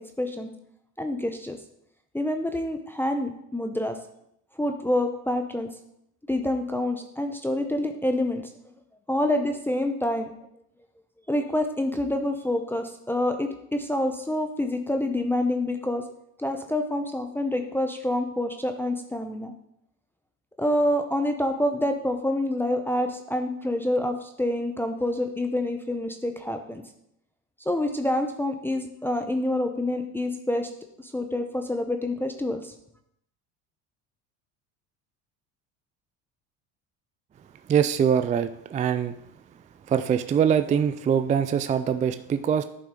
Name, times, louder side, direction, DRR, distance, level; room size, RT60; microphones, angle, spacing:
voice 1, 0.2-0.5 1.0-1.6 2.1-4.0 4.5-5.7 6.3-8.5 9.1-10.3 11.3-16.0 16.4-19.5 20.6-26.8 27.6-30.7 31.0-32.7, left 1 dB, 5° left, 4 dB, 0.7 m, -27 dB
voice 2, 37.7-39.2 39.9-42.6, right 8 dB, 20° right, 10 dB, 0.3 m, -23 dB
11.0 x 5.7 x 3.8 m, 0.76 s
supercardioid pair, 100°, 37 cm